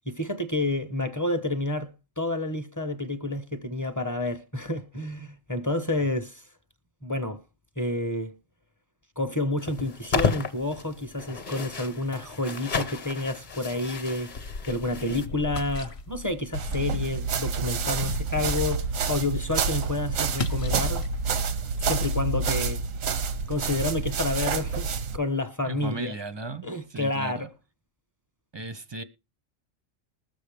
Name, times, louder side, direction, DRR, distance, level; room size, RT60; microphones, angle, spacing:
voice 1, 0.1-6.4 7.0-7.4 7.8-8.3 9.2-14.3 14.7-21.1 21.8-22.8 23.5-26.1 26.6-27.5, left 2 dB, 20° left, 0.6 m, -29 dB
sound 1, 9.6-15.3, left 6 dB, 40° left, 1.0 m, -32 dB
sound 2, 14.3-22.2, left 3 dB, 55° left, 1.0 m, -37 dB
sound 3, 16.5-25.2, right 5 dB, 90° right, 1.2 m, -28 dB
voice 2, 25.6-27.5 28.5-29.0, right 3 dB, 30° right, 0.5 m, -36 dB
20.5 x 7.0 x 3.4 m
omnidirectional pair, 1.4 m